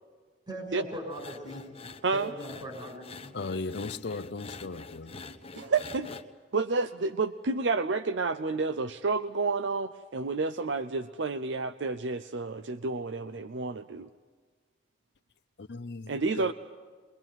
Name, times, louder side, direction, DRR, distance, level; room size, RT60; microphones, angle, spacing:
voice 1, 0.5-1.9 2.1-3.3, equal, 25° right, 5.6 m, -40 dB
sound 1, 1.1-6.2, left 4 dB, 35° left, 1.0 m, -46 dB
voice 2, 3.3-5.3 15.6-16.5, left 3 dB, 70° left, 0.7 m, -37 dB
voice 3, 5.6-6.1 6.5-14.1 16.1-16.5, right 4 dB, 90° right, 0.7 m, -30 dB
23.0 x 22.5 x 9.1 m
head